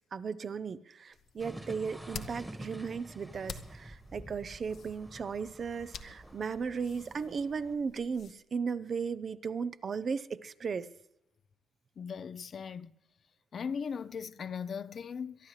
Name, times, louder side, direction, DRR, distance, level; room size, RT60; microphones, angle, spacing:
voice 1, 0.1-10.9, right 5 dB, 45° right, 0.6 m, -36 dB
sound 1, 1.1-8.3, left 7 dB, 65° left, 0.9 m, -50 dB
sound 2, 1.4-7.7, right 1 dB, 10° right, 1.5 m, -48 dB
voice 2, 12.0-12.9 13.5-15.5, left 6 dB, 50° left, 0.5 m, -38 dB
23.5 x 11.5 x 3.2 m
cardioid pair, 90°, 0 cm